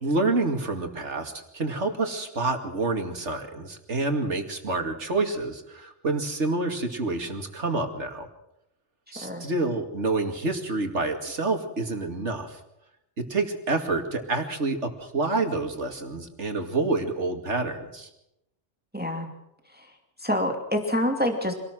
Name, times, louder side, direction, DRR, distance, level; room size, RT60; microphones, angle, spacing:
voice 1, 0.0-8.3 9.1-12.6 13.2-18.1, right 3 dB, 85° right, 4 dB, 2.8 m, -28 dB
voice 2, 9.2-9.5 18.9-19.3 19.7-19.9 20.2-21.5, left 1 dB, 10° right, 3 dB, 2.5 m, -27 dB
26.5 x 18.5 x 6.3 m, 0.84 s
omnidirectional pair, 1.2 m